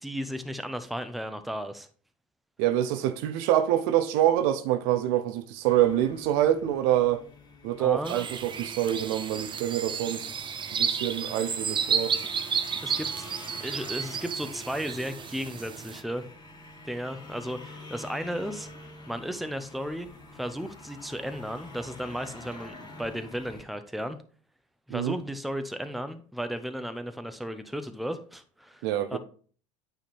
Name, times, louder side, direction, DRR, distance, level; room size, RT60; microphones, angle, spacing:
voice 1, 0.0-1.9 7.8-8.3 12.8-13.3 13.6-16.3 16.8-18.7 19.1-20.1 20.3-24.2 24.9-29.2, equal, ahead, 0.8 m, -34 dB
voice 2, 2.6-7.2 7.6-12.2 24.9-25.1 28.8-29.2, right 12 dB, 65° right, 0.7 m, -26 dB
sound 1, 5.6-23.6, left 2 dB, 25° left, 2.4 m, -48 dB
sound 2, 8.1-16.0, right 7 dB, 30° right, 0.6 m, -32 dB
8.9 x 3.6 x 4.4 m
hypercardioid pair, 75°, 17 cm